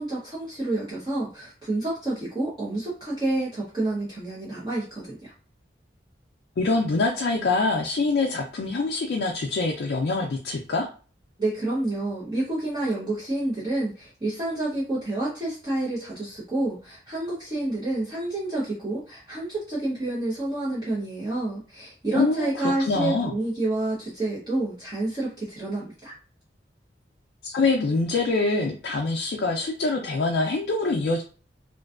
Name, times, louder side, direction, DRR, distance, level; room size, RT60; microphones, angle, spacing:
voice 1, 0.0-5.3 11.4-26.1, right 2 dB, 25° right, -8 dB, 0.6 m, -29 dB
voice 2, 6.6-10.9 22.1-23.3 27.4-31.2, left 3 dB, 65° left, 0 dB, 0.4 m, -25 dB
2.5 x 2.2 x 2.3 m, 0.37 s
head